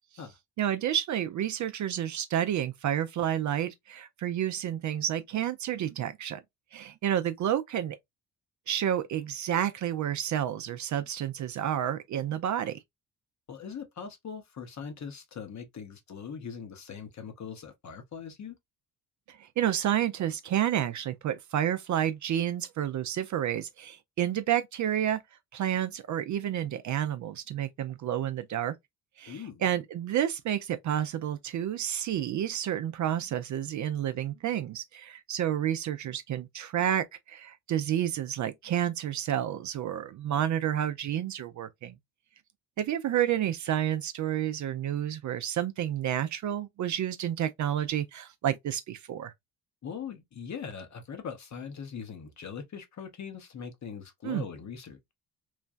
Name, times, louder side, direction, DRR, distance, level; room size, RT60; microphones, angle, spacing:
voice 1, 0.6-6.4 6.7-8.0 8.7-12.8 19.3-25.2 25.5-28.7 29.2-42.0 42.8-49.3 54.2-54.4, right 10 dB, 45° right, 0.4 m, -30 dB
voice 2, 13.5-18.6 29.3-29.7 49.8-55.0, left 6 dB, 40° left, 0.9 m, -41 dB
3.1 x 2.2 x 2.4 m
hypercardioid pair, 55°, 43 cm